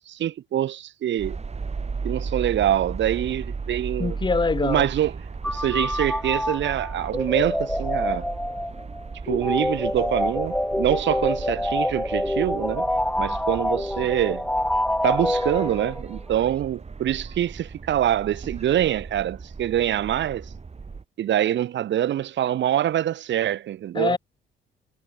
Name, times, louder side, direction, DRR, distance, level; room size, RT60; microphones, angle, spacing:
voice 1, 0.1-1.4 2.0-4.2 4.6-5.1 5.5-8.3 9.3-12.9 13.2-14.5 15.0-20.4 21.2-24.2, right 11 dB, 70° right, 1.5 m, -25 dB
sound 1, 1.2-21.0, right 4 dB, 30° right, 7.3 m, -36 dB
voice 2, 4.0-4.9 23.9-24.2, left 4 dB, 25° left, 0.8 m, -24 dB
sound 2, 5.4-16.2, left 1 dB, 5° left, 1.8 m, -26 dB
cardioid pair, 90°, 20 cm